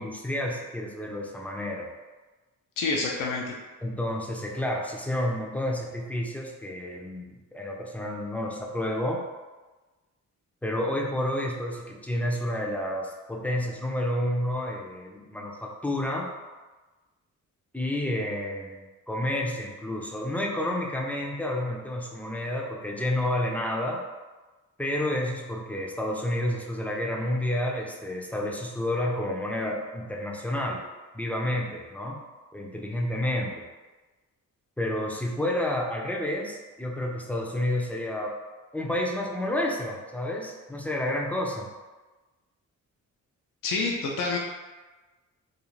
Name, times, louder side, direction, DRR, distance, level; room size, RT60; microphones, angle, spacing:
voice 1, 0.0-1.9 3.8-9.2 10.6-16.3 17.7-24.0 24.8-30.8 31.1-32.2 32.5-33.5 34.8-38.3 38.7-41.7, left 1 dB, 5° left, -2 dB, 0.5 m, -30 dB
voice 2, 2.8-3.5 43.6-44.4, left 3 dB, 70° left, -2 dB, 0.5 m, -27 dB
2.4 x 2.4 x 3.1 m, 1.2 s
cardioid pair, 70°, 33 cm